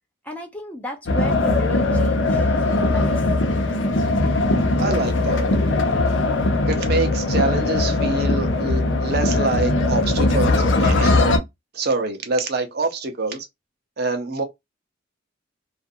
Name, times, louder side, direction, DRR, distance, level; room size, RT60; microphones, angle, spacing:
voice 1, 0.2-2.5 2.8-3.2, equal, 5° left, 0.6 m, -34 dB
sound 1, 1.1-11.4, left 2 dB, 65° left, 0.6 m, -20 dB
voice 2, 4.8-5.5 6.7-11.2 11.7-13.5 14.0-14.4, right 3 dB, 50° right, 0.6 m, -25 dB
2.5 x 2.4 x 2.6 m
head